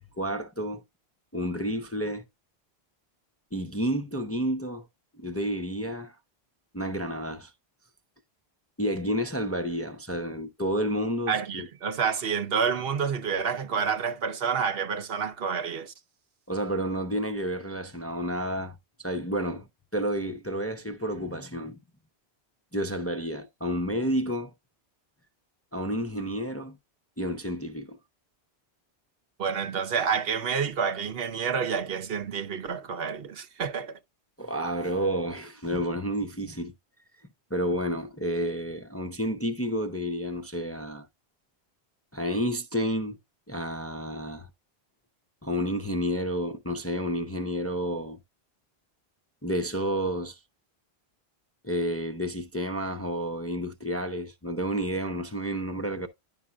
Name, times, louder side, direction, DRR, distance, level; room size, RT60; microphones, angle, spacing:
voice 1, 0.2-0.8 1.3-2.3 3.5-4.9 5.2-6.2 6.7-7.5 8.8-11.7 16.5-19.7 19.9-21.8 22.7-24.5 25.7-26.8 27.2-28.0 34.4-36.7 37.5-41.1 42.1-43.2 43.5-44.5 45.4-48.2 49.4-50.4 51.6-56.1, equal, 15° left, 0.6 m, -30 dB
voice 2, 11.3-15.9 29.4-34.0, right 6 dB, 65° right, 1.0 m, -29 dB
11.0 x 5.5 x 2.3 m
omnidirectional pair, 1.1 m